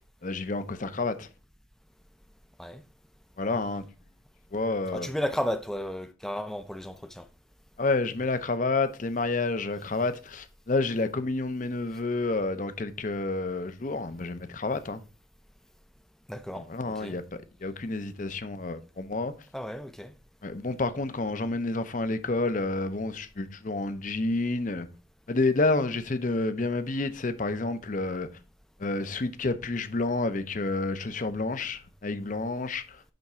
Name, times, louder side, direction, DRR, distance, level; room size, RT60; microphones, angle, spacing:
voice 1, 0.2-1.3 3.4-3.9 4.5-5.1 7.8-15.0 16.5-19.3 20.4-24.9 25.3-28.3 28.8-33.0, left 3 dB, 40° left, 0.6 m, -29 dB
voice 2, 4.9-7.3 16.3-16.7 17.0-17.2 19.5-20.1, equal, ahead, 0.4 m, -33 dB
10.5 x 3.6 x 4.2 m
head